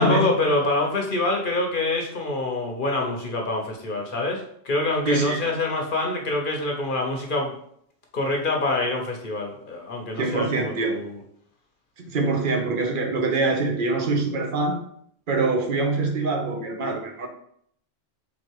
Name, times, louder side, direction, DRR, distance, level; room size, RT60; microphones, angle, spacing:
voice 1, 0.0-7.5 8.1-11.2, left 2 dB, 50° left, 1 dB, 0.9 m, -25 dB
voice 2, 5.1-5.4 10.1-11.0 12.0-14.8 15.3-17.3, right 3 dB, 50° right, 3 dB, 0.8 m, -24 dB
3.6 x 3.2 x 4.5 m, 0.67 s
omnidirectional pair, 1.3 m